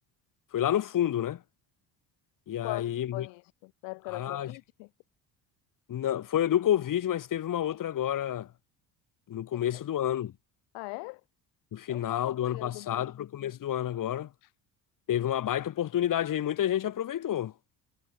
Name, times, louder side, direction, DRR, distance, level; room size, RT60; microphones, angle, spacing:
voice 1, 0.5-1.4 2.5-3.3 4.1-4.5 5.9-8.5 9.3-10.3 11.7-14.3 15.1-17.5, left 11 dB, 50° left, 2.2 m, -29 dB
voice 2, 2.6-4.9 9.7-9.8 10.7-11.2 11.9-13.1 14.4-14.5, left 29 dB, 85° left, 2.2 m, -41 dB
supercardioid pair, 90°, 40 cm